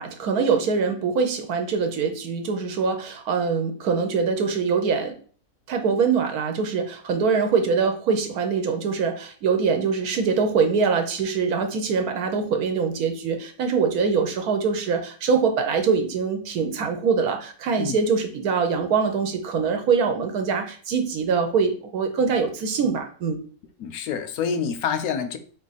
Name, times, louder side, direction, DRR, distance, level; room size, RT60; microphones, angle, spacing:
voice 1, 0.0-5.2 5.7-23.4, right 5 dB, 80° right, 5 dB, 1.3 m, -23 dB
voice 2, 23.8-25.4, left 6 dB, 80° left, 10 dB, 1.0 m, -27 dB
3.8 x 3.0 x 4.0 m, 0.43 s
omnidirectional pair, 1.6 m